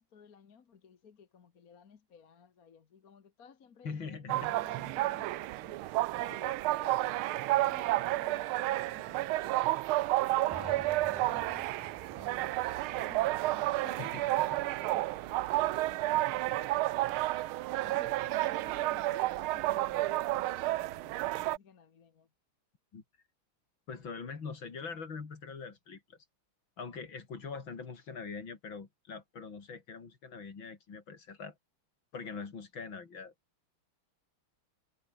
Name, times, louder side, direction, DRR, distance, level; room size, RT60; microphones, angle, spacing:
voice 1, 0.0-4.0 4.4-5.9 6.1-9.7 10.4-11.7 12.1-16.8 17.2-22.3, left 6 dB, 45° left, 1.8 m, -56 dB
voice 2, 3.8-4.5 14.0-14.2 22.9-23.0 23.9-26.2 26.8-31.6 32.1-33.3, left 5 dB, 60° left, 3.7 m, -43 dB
sound 1, 4.3-21.6, right 17 dB, 75° right, 1.5 m, -31 dB
sound 2, 10.5-14.2, right 1 dB, 10° right, 2.1 m, -51 dB
omnidirectional pair, 2.4 m